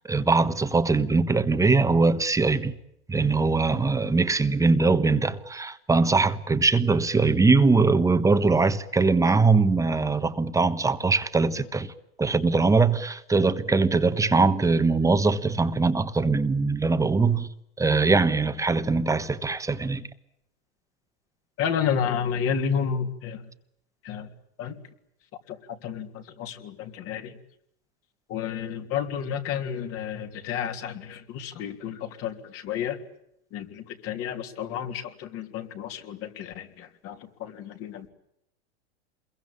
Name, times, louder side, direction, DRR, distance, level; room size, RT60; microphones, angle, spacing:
voice 1, 0.1-2.7 3.1-11.9 12.2-17.5 17.8-20.0, right 3 dB, 10° right, 1.3 m, -22 dB
voice 2, 21.6-23.5 24.0-24.3 24.6-24.8 25.5-27.4 28.3-33.0 33.5-38.1, left 7 dB, 45° left, 3.3 m, -31 dB
27.5 x 22.5 x 8.8 m
hypercardioid pair, 120°, 33 cm